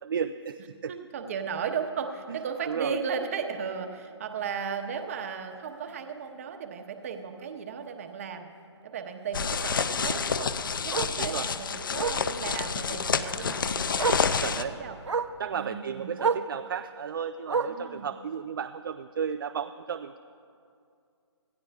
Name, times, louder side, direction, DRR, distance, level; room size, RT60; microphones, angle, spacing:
voice 1, 0.0-0.9 2.3-2.4 2.6-3.0 11.2-11.5 14.4-14.8 15.4-20.2, right 7 dB, 50° right, 9 dB, 0.4 m, -33 dB
voice 2, 0.9-8.5 8.8-10.5 10.8-15.0 15.5-16.1 17.7-18.1, right 6 dB, 30° right, 5 dB, 1.1 m, -35 dB
Bark, 4.5-4.6 5.0-5.1 5.5-5.6 5.9-6.0 7.4-7.5 10.0-10.1 10.9-11.2 12.0-12.3 13.5-13.6 14.0-14.3 15.0-15.4 16.2-16.5 17.5-17.9 18.9-19.0, right 5 dB, 90° right, 0.9 m, -29 dB
sound 1, 9.3-14.6, left 6 dB, 45° left, 0.6 m, -29 dB
26.0 x 16.5 x 2.4 m, 2.4 s
hypercardioid pair, 165°, 15 cm